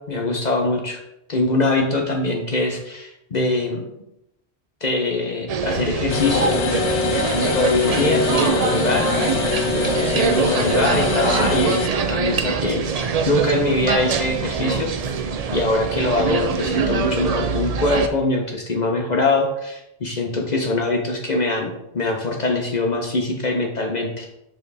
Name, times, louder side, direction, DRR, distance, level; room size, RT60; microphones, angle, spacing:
voice 1, 0.1-1.0 1.3-3.8 4.8-6.5 7.4-9.1 9.7-14.9 15.5-24.3, left 2 dB, 45° left, 1 dB, 0.8 m, -23 dB
sound 1, 5.5-18.1, right 5 dB, 50° right, 0.4 m, -23 dB
sound 2, 6.1-11.9, left 5 dB, 80° left, 0.8 m, -23 dB
7.0 x 4.0 x 3.3 m, 0.85 s
omnidirectional pair, 1.1 m